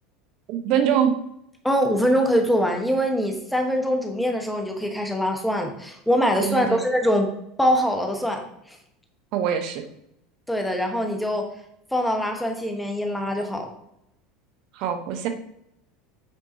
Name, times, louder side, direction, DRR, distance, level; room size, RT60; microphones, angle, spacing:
voice 1, 0.5-1.1 6.4-6.8 9.3-9.8 14.7-15.3, right 9 dB, 50° right, 7 dB, 1.0 m, -23 dB
voice 2, 1.6-7.3 7.6-8.4 8.7-8.8 10.5-11.4 11.9-13.7, equal, 5° left, 3 dB, 1.2 m, -23 dB
8.1 x 6.1 x 2.8 m, 0.78 s
figure-of-eight pair, 75°, 0 cm